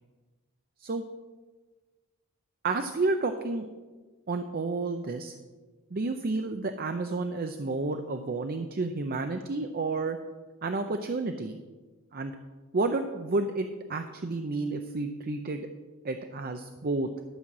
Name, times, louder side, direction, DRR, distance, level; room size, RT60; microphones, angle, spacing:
voice 1, 2.6-3.7 4.3-5.3 5.9-10.2 10.6-11.6 12.1-12.3 12.7-15.7 16.0-17.1, right 3 dB, 45° right, 7 dB, 0.6 m, -30 dB
12.5 x 5.6 x 7.3 m, 1.3 s
head